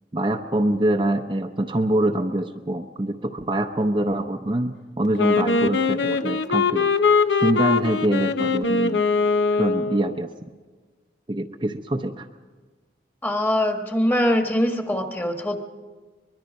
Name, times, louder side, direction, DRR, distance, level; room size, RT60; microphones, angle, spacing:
voice 1, 0.1-6.9 7.4-9.0 9.5-10.3 11.3-12.3, right 1 dB, 25° right, 3 dB, 0.6 m, -24 dB
Wind instrument woodwind instrument, 5.2-10.2, left 4 dB, 90° left, 0.9 m, -22 dB
voice 2, 13.2-15.6, left 1 dB, 10° left, 5 dB, 1.4 m, -22 dB
24.0 x 21.5 x 5.3 m, 1.4 s
head